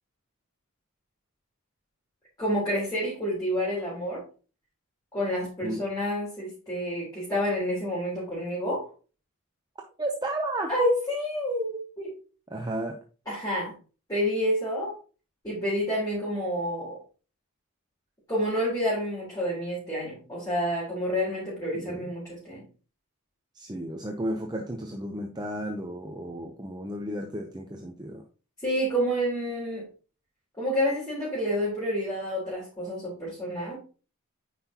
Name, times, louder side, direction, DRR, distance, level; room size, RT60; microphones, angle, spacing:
voice 1, 2.4-4.2 5.1-8.9 10.7-12.1 13.3-13.7 14.1-15.0 15.4-17.0 18.3-22.6 28.6-29.9 30.6-33.8, equal, 15° left, -8 dB, 3.8 m, -29 dB
voice 2, 10.0-10.7 12.5-13.0 21.7-22.1 23.5-28.2, right 1 dB, 20° right, 2 dB, 0.7 m, -33 dB
9.3 x 5.9 x 2.9 m, 0.36 s
head